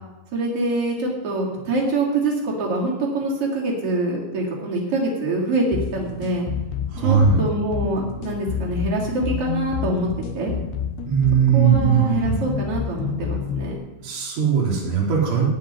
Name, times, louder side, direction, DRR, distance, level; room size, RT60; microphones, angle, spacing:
voice 1, 0.3-5.7 5.9-6.5 7.0-10.1 10.3-10.5 11.5-13.8, right 2 dB, 35° right, -3 dB, 3.7 m, -25 dB
sound 1, 5.7-13.7, left 8 dB, 75° left, 3.4 m, -29 dB
voice 2, 6.9-7.5 11.1-12.4 14.0-15.5, right 7 dB, 85° right, -4 dB, 6.1 m, -19 dB
16.0 x 5.8 x 9.9 m, 1.1 s
omnidirectional pair, 5.2 m